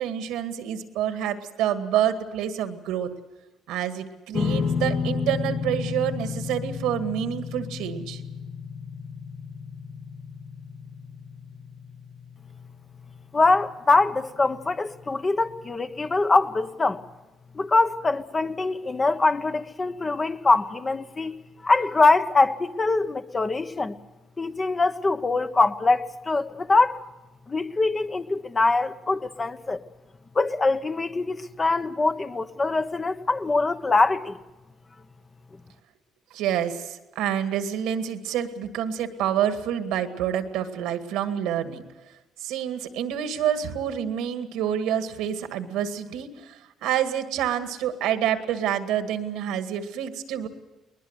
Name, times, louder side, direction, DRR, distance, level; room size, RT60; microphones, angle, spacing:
voice 1, 0.0-3.1 3.7-8.2 36.3-41.8 42.4-50.5, right 10 dB, 85° right, 2.0 m, -28 dB
sound 1, 4.3-16.9, left 5 dB, 50° left, 2.0 m, -33 dB
voice 2, 13.3-17.0 17.5-21.4 21.6-23.9 24.4-27.0 27.5-29.8 30.3-34.4, left 3 dB, 30° left, 1.2 m, -23 dB
21.0 x 20.5 x 8.1 m
supercardioid pair, 75°, 0 cm